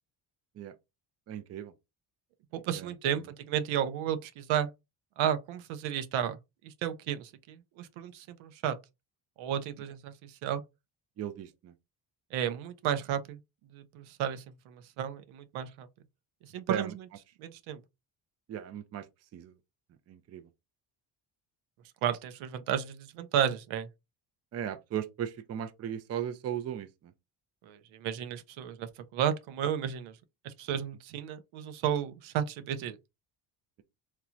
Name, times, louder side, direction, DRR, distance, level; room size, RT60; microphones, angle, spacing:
voice 1, 1.3-1.7 2.7-3.3 11.2-11.7 16.7-17.0 18.5-19.1 19.3-19.5 20.1-20.5 24.5-27.1, right 9 dB, 35° right, 0.4 m, -37 dB
voice 2, 2.5-4.7 5.2-6.4 6.6-8.8 9.4-10.6 12.3-13.4 13.7-15.9 16.5-16.9 17.4-17.8 22.0-23.9 27.7-30.1 30.4-33.0, right 9 dB, 75° right, 0.6 m, -33 dB
3.0 x 2.2 x 2.4 m
supercardioid pair, 75°, 47 cm